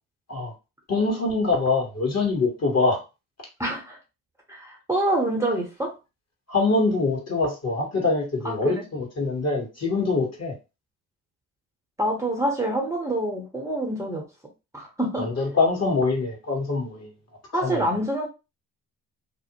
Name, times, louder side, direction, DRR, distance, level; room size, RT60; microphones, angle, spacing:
voice 1, 0.9-3.0 6.5-10.5 15.2-17.1 17.5-17.8, left 3 dB, 35° left, 0 dB, 1.4 m, -24 dB
voice 2, 3.6-4.0 4.5-5.9 8.4-8.8 12.0-14.3 14.7-15.3 17.5-18.3, right 1 dB, 5° right, -1 dB, 0.9 m, -26 dB
2.6 x 2.0 x 2.9 m, 0.27 s
hypercardioid pair, 60°, 42 cm